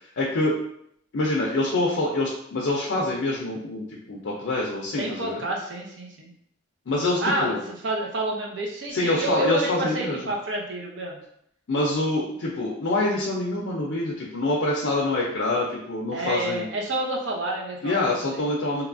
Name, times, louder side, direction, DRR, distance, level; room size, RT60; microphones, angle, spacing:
voice 1, 0.2-0.6 1.1-5.4 6.9-7.6 8.9-10.2 11.7-16.7 17.8-18.9, left 2 dB, 70° left, -3 dB, 0.4 m, -25 dB
voice 2, 5.0-6.3 7.2-11.2 16.1-18.5, right 1 dB, 65° right, -1 dB, 0.6 m, -29 dB
2.9 x 2.3 x 2.4 m, 0.73 s
head